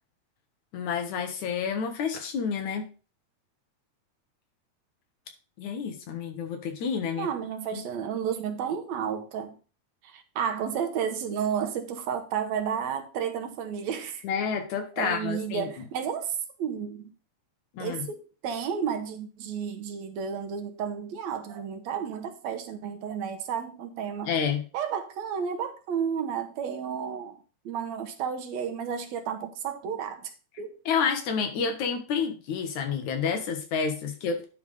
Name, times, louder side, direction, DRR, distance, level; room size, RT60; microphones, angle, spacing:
voice 1, 0.7-2.9 5.6-7.3 7.7-7.8 14.2-15.9 17.7-18.1 24.2-24.6 30.9-34.5, left 6 dB, 85° left, 2.8 m, -29 dB
voice 2, 7.2-9.6 10.0-14.2 15.0-17.1 17.8-24.3 24.7-27.4 27.7-30.3 30.6-30.7, right 7 dB, 75° right, 2.2 m, -32 dB
10.5 x 3.7 x 5.3 m
omnidirectional pair, 3.3 m